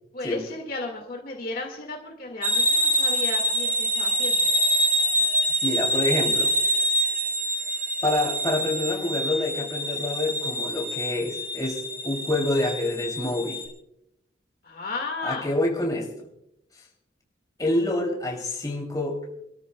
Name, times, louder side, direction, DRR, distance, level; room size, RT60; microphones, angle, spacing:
voice 1, 0.1-4.4 14.6-15.5, left 3 dB, 50° left, 1 dB, 1.8 m, -34 dB
sound 1, 2.4-13.6, equal, 10° right, 2.2 m, -25 dB
voice 2, 5.3-6.5 8.0-13.6 15.2-16.3 17.6-19.2, left 1 dB, 20° left, -1 dB, 2.7 m, -27 dB
27.5 x 13.5 x 2.2 m, 0.81 s
head